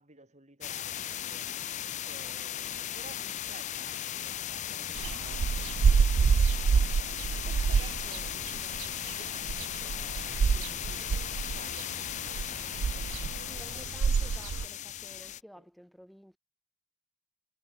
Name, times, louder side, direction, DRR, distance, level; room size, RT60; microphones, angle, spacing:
voice 1, 0.0-1.6 2.0-14.3, right 3 dB, 35° right, 5.3 m, -55 dB
sound 1, 0.6-15.4, left 11 dB, 35° left, 0.4 m, -37 dB
sound 2, 5.0-14.7, right 6 dB, 70° right, 0.4 m, -27 dB
voice 2, 13.5-16.4, equal, ahead, 2.2 m, -53 dB
head